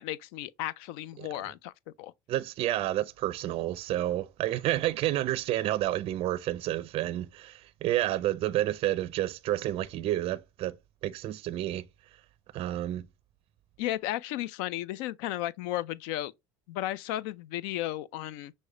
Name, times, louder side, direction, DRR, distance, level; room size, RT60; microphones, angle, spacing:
voice 1, 0.0-1.7 2.0-2.1 13.8-16.3 16.7-18.5, left 14 dB, 70° left, 0.4 m, -34 dB
voice 2, 2.3-10.8 11.0-11.9 12.5-13.0, right 14 dB, 50° right, 0.4 m, -30 dB
6.3 x 2.1 x 3.1 m
supercardioid pair, 95°, 12 cm